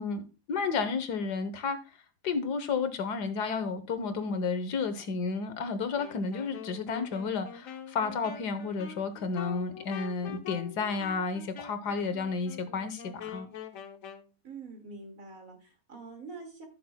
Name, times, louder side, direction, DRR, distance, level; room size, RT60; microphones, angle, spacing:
voice 1, 0.0-1.8 2.2-13.5, left 4 dB, 90° left, 1.6 m, -32 dB
Wind instrument woodwind instrument, 5.9-14.3, left 8 dB, 60° left, 1.2 m, -44 dB
voice 2, 14.4-16.7, right 4 dB, 55° right, 2.5 m, -45 dB
14.5 x 6.8 x 2.2 m
omnidirectional pair, 1.7 m